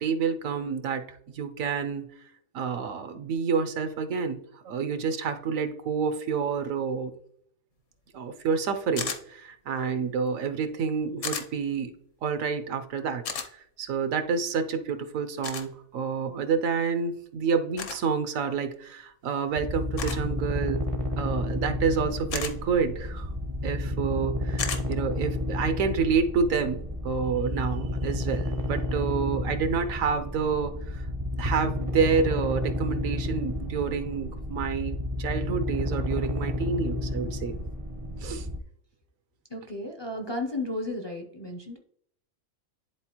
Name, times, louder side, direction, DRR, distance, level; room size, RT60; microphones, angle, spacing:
voice 1, 0.0-2.1 2.5-7.1 8.1-11.9 12.2-13.2 13.8-20.9 21.2-23.3 23.6-31.1 31.4-37.6 38.2-38.5, right 5 dB, 80° right, 8 dB, 1.1 m, -28 dB
sound 1, 9.0-9.2 11.2-11.5 13.3-13.5 15.4-15.7 17.8-18.0 20.0-20.3 22.3-22.5 24.6-24.8, left 6 dB, 65° left, 1.1 m, -32 dB
sound 2, 19.6-38.6, left 1 dB, 40° right, 0.5 m, -31 dB
voice 2, 39.5-41.8, left 2 dB, 40° left, 3 dB, 0.3 m, -34 dB
10.5 x 3.9 x 2.9 m, 0.67 s
omnidirectional pair, 1.4 m